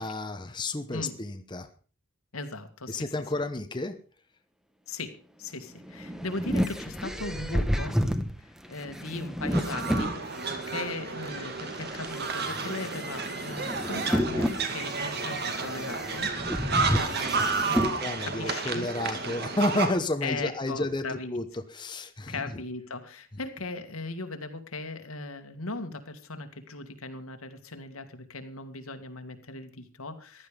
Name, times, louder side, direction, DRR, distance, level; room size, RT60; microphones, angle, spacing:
voice 1, 0.0-1.7 2.9-4.0 18.0-22.6, left 2 dB, 20° left, 8 dB, 1.0 m, -31 dB
voice 2, 2.3-2.9 4.9-5.1 6.2-6.6 7.0-7.9 8.7-10.2 10.7-11.5 12.0-12.3 12.6-15.4 15.6-16.3 16.9-18.9 20.2-21.4 22.3-23.0 23.4-25.9 26.3-27.4 27.7-28.0 28.3-29.7 30.0-30.1, left 3 dB, 85° left, 7 dB, 2.1 m, -37 dB
sound 1, 5.7-10.7 11.3-18.0, equal, ahead, 1.1 m, -31 dB
sound 2, 9.5-19.9, right 4 dB, 50° right, 2.2 m, -31 dB
15.0 x 12.0 x 5.2 m, 0.38 s
head